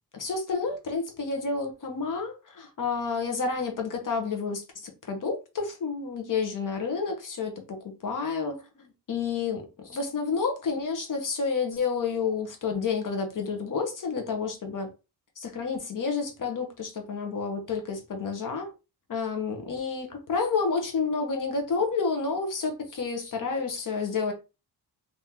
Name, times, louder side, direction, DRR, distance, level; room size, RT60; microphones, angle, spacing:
voice 1, 0.1-7.8 8.0-14.9 15.4-18.7 19.1-24.3, left 5 dB, 50° left, 1.0 m, -30 dB
3.7 x 2.7 x 2.8 m
wide cardioid pair, 150°, 42 cm